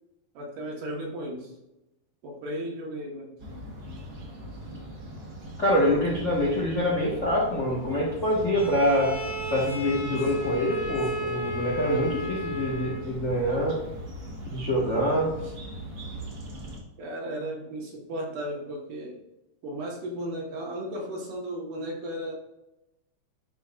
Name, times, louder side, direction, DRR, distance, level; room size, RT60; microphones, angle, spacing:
voice 1, 0.3-1.5 2.2-3.4 15.0-15.5 17.0-19.2 19.6-22.3, right 1 dB, 80° right, -1 dB, 2.9 m, -35 dB
sound 1, 3.4-16.8, equal, 50° right, 1.5 m, -40 dB
voice 2, 5.6-9.1 9.5-13.8 14.5-15.3, equal, 75° left, -5 dB, 0.6 m, -25 dB
Bowed string instrument, 8.5-13.1, equal, 35° left, 2.7 m, -34 dB
11.0 x 4.2 x 2.4 m, 0.93 s
omnidirectional pair, 3.7 m